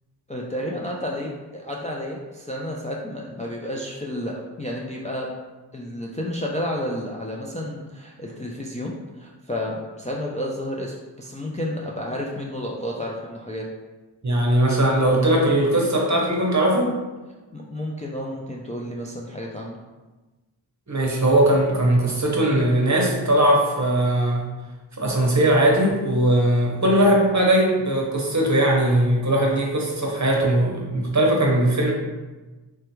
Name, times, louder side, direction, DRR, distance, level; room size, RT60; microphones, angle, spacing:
voice 1, 0.3-5.3 5.7-13.6 17.5-19.8, left 1 dB, 20° left, -2 dB, 0.3 m, -31 dB
voice 2, 14.2-17.0 20.9-24.4 25.0-31.9, right 1 dB, 40° right, -2 dB, 0.7 m, -19 dB
3.3 x 2.2 x 3.0 m, 1.2 s
wide cardioid pair, 40°, 43 cm